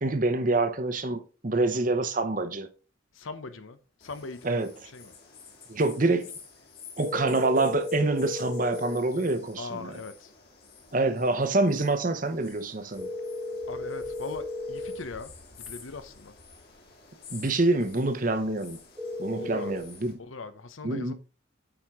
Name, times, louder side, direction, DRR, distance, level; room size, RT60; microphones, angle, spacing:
voice 1, 0.0-2.7 4.4-4.7 5.7-6.3 7.0-9.9 10.9-13.1 17.3-18.8 19.2-20.2 20.8-21.1, right 2 dB, 40° right, 0.8 m, -26 dB
voice 2, 3.1-5.1 9.6-10.3 13.7-16.3 19.4-19.9 20.2-21.1, left 3 dB, 85° left, 0.8 m, -41 dB
sound 1, 4.0-20.1, left 5 dB, 50° left, 2.4 m, -50 dB
sound 2, 7.0-9.0 13.0-15.0 19.0-19.8, left 2 dB, 10° right, 1.0 m, -35 dB
8.7 x 4.6 x 3.6 m
head